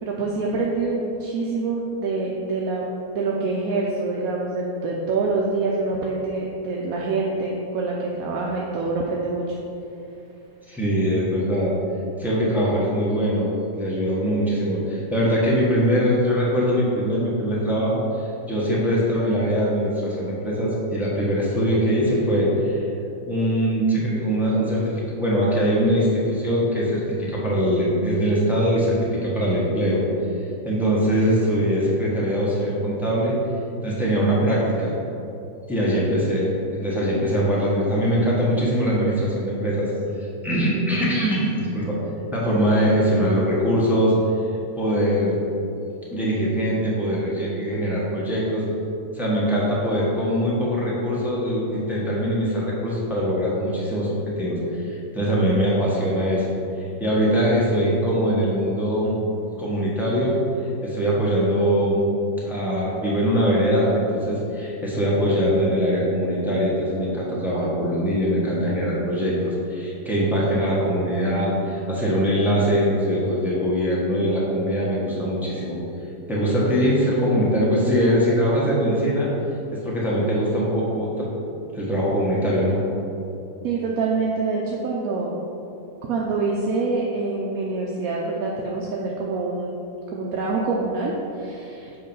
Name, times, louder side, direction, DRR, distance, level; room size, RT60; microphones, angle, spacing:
voice 1, 0.0-2.8 3.1-9.6 83.6-85.3 86.1-89.8 90.1-91.9, right 3 dB, 75° right, -2 dB, 1.0 m, -26 dB
voice 2, 10.7-11.7 12.2-22.9 23.2-30.0 30.6-33.3 33.8-34.9 35.7-39.9 40.2-42.0 42.3-44.1 44.8-45.4 46.1-48.6 49.1-56.5 56.7-59.2 59.6-60.4 60.8-62.1 62.4-75.8 76.3-79.3 79.7-81.3 81.7-82.8, equal, ahead, -7 dB, 1.2 m, -22 dB
8.1 x 3.1 x 5.4 m, 2.9 s
omnidirectional pair, 1.6 m